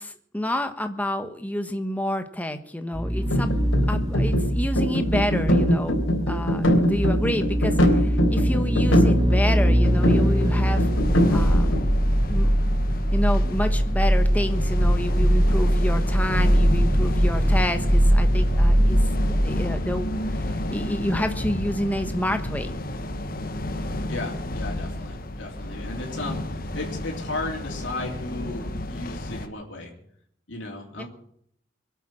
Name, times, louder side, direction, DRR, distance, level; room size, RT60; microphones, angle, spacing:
voice 1, 0.0-3.6 3.9-10.9 11.3-12.5 13.1-22.7 31.0-31.1, left 1 dB, 10° left, 8 dB, 1.2 m, -29 dB
sound 1, 2.9-20.5 20.7-20.8, equal, 20° right, 1.3 m, -22 dB
sound 2, 3.3-11.8, equal, 90° left, 3.3 m, -23 dB
sound 3, 9.8-29.5, left 1 dB, 45° left, 1.1 m, -31 dB
voice 2, 24.0-29.9 30.5-31.0, left 2 dB, 75° left, -1 dB, 3.5 m, -35 dB
22.5 x 8.2 x 7.6 m, 0.68 s
head